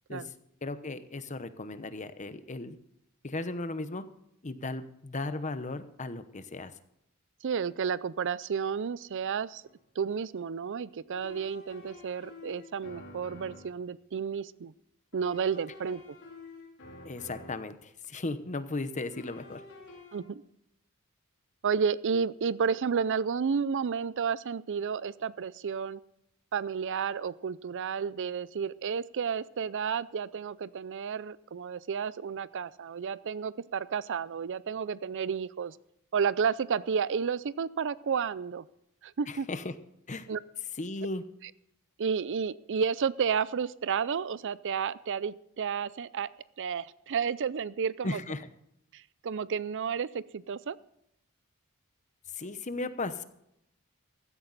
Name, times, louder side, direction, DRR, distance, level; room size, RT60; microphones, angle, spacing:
voice 1, 0.6-2.8 3.2-4.0 4.4-6.7 17.0-19.6 39.3-39.7 40.1-40.3 40.8-41.2 48.0-48.5 52.3-53.2, left 2 dB, 35° left, 12 dB, 0.9 m, -36 dB
voice 2, 7.4-9.6 10.0-14.7 15.1-16.0 20.1-20.4 21.6-26.0 26.5-35.8 36.1-38.7 39.0-39.5 40.3-40.4 42.0-46.3 46.6-48.2 48.9-50.8, right 6 dB, 55° right, 19 dB, 0.4 m, -31 dB
sound 1, 9.6-9.8 11.1-13.8 15.1-17.8 19.1-20.2, left 3 dB, 60° left, 4.1 m, -49 dB
16.0 x 13.0 x 4.1 m, 0.79 s
head